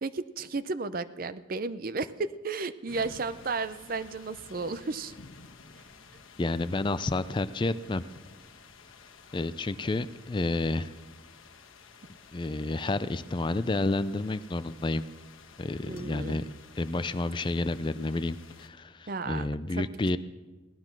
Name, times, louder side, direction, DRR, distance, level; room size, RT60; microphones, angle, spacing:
voice 1, 0.0-5.1 15.8-16.4 19.1-19.9, right 3 dB, 45° right, 14 dB, 0.5 m, -33 dB
sound 1, 2.9-18.7, left 4 dB, 90° left, 1.4 m, -52 dB
voice 2, 6.4-8.0 9.3-10.9 12.3-15.0 15.6-16.4 16.8-20.2, left 2 dB, 25° left, 14 dB, 0.4 m, -30 dB
17.5 x 12.0 x 5.9 m, 1.2 s
head